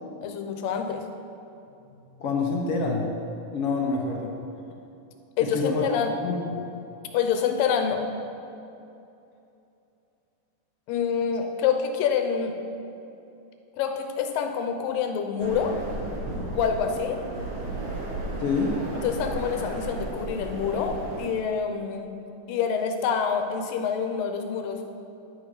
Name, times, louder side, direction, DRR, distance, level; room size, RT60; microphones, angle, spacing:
voice 1, 0.2-1.0 5.4-6.1 7.1-8.1 10.9-12.5 13.8-15.8 16.5-17.2 19.0-22.1 22.5-24.8, left 7 dB, 85° left, 5 dB, 2.5 m, -26 dB
voice 2, 1.9-3.1 3.5-4.3 5.4-5.8 6.2-6.4 18.4-18.8, left 4 dB, 65° left, 0 dB, 1.4 m, -27 dB
sound 1, 15.4-21.3, right 2 dB, 75° right, 3.6 m, -34 dB
10.0 x 10.0 x 4.9 m, 2.8 s
omnidirectional pair, 3.9 m